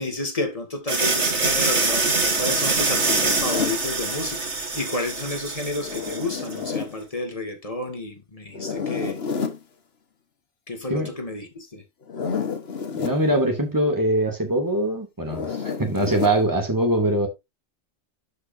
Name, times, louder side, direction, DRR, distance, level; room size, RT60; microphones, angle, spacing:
voice 1, 0.0-2.1 2.4-9.2 10.7-11.8, left 2 dB, 30° left, 2.4 m, -31 dB
sound 1, 0.9-6.6, right 3 dB, 75° right, 2.3 m, -24 dB
Zipper (clothing), 2.9-3.8 5.8-6.9 8.5-9.6 12.0-13.2 15.2-16.4, left 6 dB, 60° left, 1.5 m, -30 dB
voice 2, 13.0-17.3, right 1 dB, 15° right, 2.4 m, -22 dB
11.5 x 5.8 x 2.8 m
omnidirectional pair, 1.2 m